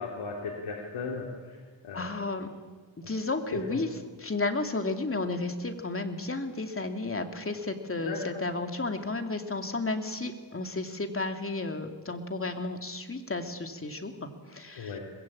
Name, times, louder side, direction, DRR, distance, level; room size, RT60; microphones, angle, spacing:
voice 1, 0.0-2.2 3.0-3.1 3.5-3.8 8.0-8.4 14.8-15.0, left 4 dB, 85° left, -2 dB, 3.6 m, -37 dB
voice 2, 1.9-2.5 3.1-3.9 4.2-14.9, left 3 dB, 30° left, 5 dB, 2.7 m, -33 dB
23.5 x 21.0 x 8.8 m, 1.4 s
cardioid pair, 80°, 47 cm